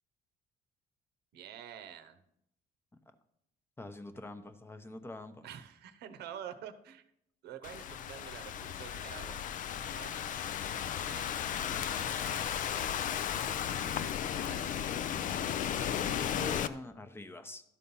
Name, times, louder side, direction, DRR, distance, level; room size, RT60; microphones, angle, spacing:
voice 1, 1.3-2.2 5.4-7.1 7.4-9.5 10.0-10.3 11.0-12.7 14.3-14.7, right 9 dB, 75° right, 11 dB, 0.8 m, -48 dB
voice 2, 3.8-5.5 16.1-17.6, left 1 dB, 15° left, 9 dB, 0.8 m, -45 dB
Thunderstorm / Rain, 7.6-16.7, left 9 dB, 50° left, 0.5 m, -35 dB
12.0 x 4.2 x 5.4 m, 0.75 s
cardioid pair, 110°, 17 cm